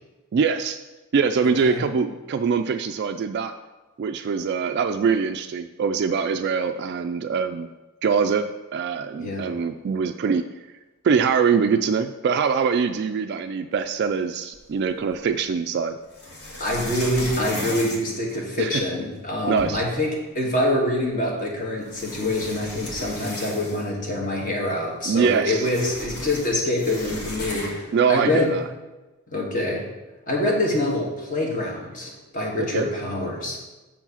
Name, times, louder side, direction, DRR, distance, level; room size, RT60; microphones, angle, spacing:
voice 1, 0.3-0.8 1.1-3.5 4.0-7.7 8.0-8.5 8.7-10.4 11.0-16.0 18.6-18.8 19.5-19.8 25.1-25.7 27.9-28.7 32.6-32.9, right 6 dB, 50° right, 7 dB, 0.3 m, -23 dB
sound 1, 14.5-15.3 16.1-18.8 19.3-19.4 19.6-20.0 21.1-21.2 21.8-24.0 24.3-24.4 24.7-27.9, left 1 dB, 85° left, 1.9 m, -36 dB
voice 2, 16.6-28.5 29.3-29.8 30.3-33.6, left 1 dB, 40° left, -1 dB, 1.7 m, -25 dB
7.4 x 4.6 x 5.7 m, 1.1 s
head